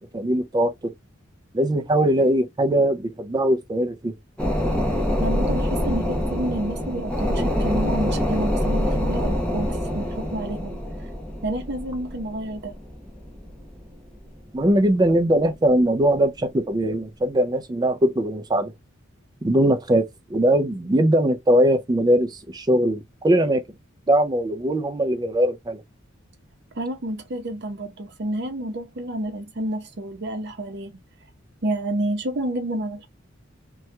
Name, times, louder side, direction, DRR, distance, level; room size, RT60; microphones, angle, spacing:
voice 1, 0.1-0.9 1.5-4.1 14.5-18.7 19.4-23.6 24.1-25.8, right 1 dB, 20° right, 0.4 m, -21 dB
sound 1, 4.4-14.4 14.8-14.9, equal, 5° left, 0.8 m, -25 dB
voice 2, 5.2-10.8 11.4-12.7 26.7-31.0 31.6-33.1, right 1 dB, 55° right, 0.7 m, -29 dB
2.8 x 2.3 x 3.1 m
head